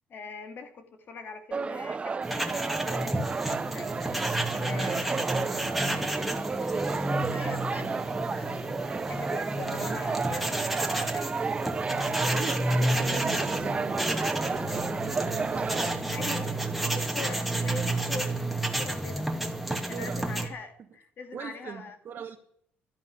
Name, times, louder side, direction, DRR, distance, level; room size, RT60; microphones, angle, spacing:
voice 1, 0.1-3.9 4.5-5.1 5.7-6.2 6.5-6.8 7.2-8.7 9.1-11.3 11.6-12.1 14.6-14.7 16.1-16.6 16.9-18.4 18.8-19.5 19.9-22.3, left 4 dB, 55° left, 7 dB, 2.7 m, -43 dB
sound 1, 1.5-15.9, right 4 dB, 30° right, 0.6 m, -32 dB
sound 2, 2.2-20.5, right 1 dB, ahead, 2.2 m, -31 dB
voice 2, 4.5-5.8 7.8-8.1 9.8-10.0 12.3-16.9 19.7-20.4 21.3-22.4, right 8 dB, 55° right, 2 dB, 1.4 m, -40 dB
12.5 x 11.0 x 9.6 m, 0.65 s
cardioid pair, 100°, 4 cm